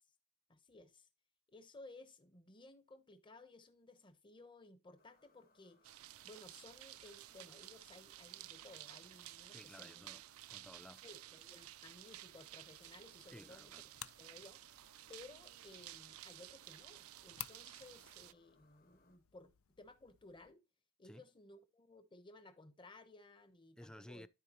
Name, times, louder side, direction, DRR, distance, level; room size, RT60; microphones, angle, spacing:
voice 1, 0.5-1.1 1.5-10.1 11.0-13.7 14.2-14.6 15.1-20.6 21.0-24.3, left 2 dB, 25° left, 1.0 m, -58 dB
sound 1, 5.0-19.2, left 3 dB, 45° left, 1.6 m, -74 dB
sound 2, 5.8-18.3, right 14 dB, 85° right, 0.4 m, -54 dB
voice 2, 9.5-11.0 13.3-13.9 21.0-21.2 23.8-24.3, left 1 dB, 5° left, 0.3 m, -56 dB
sound 3, 12.6-20.5, left 13 dB, 75° left, 0.5 m, -56 dB
13.0 x 4.7 x 3.0 m
head